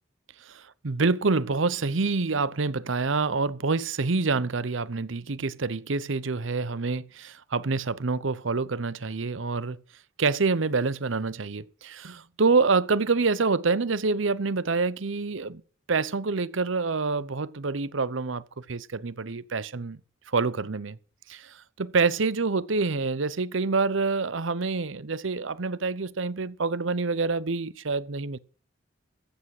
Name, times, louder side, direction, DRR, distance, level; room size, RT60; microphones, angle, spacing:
voice 1, 0.8-9.8 10.2-15.6 15.9-20.0 20.3-21.0 21.3-28.4, right 4 dB, 70° right, 0.8 m, -27 dB
14.5 x 8.5 x 7.7 m
head